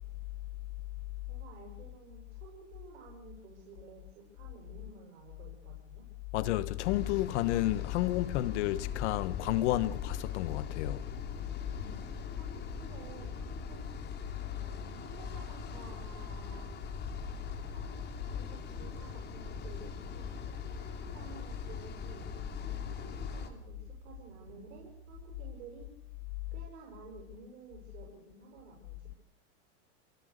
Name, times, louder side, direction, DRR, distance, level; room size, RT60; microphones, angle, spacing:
voice 1, 1.3-6.1 11.7-12.0 12.3-13.8 14.5-16.7 17.7-18.0 18.3-22.3 22.8-25.9 26.5-29.2, right 4 dB, 80° right, 6.8 m, -53 dB
voice 2, 6.3-11.0, left 15 dB, 70° left, 1.4 m, -31 dB
sound 1, 6.8-23.5, left 6 dB, 30° left, 3.5 m, -41 dB
sound 2, 10.1-25.9, right 6 dB, 5° right, 6.5 m, -55 dB
28.5 x 18.0 x 6.8 m
supercardioid pair, 155°, 36 cm